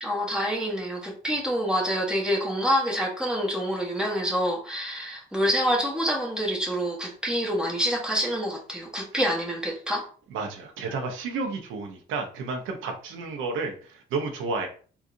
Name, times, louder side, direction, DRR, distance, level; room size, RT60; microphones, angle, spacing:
voice 1, 0.0-10.0, equal, 5° right, 1.2 m, -27 dB
voice 2, 10.3-14.7, right 4 dB, 85° right, 0.7 m, -31 dB
3.7 x 2.4 x 2.5 m
cardioid pair, 90°, 20 cm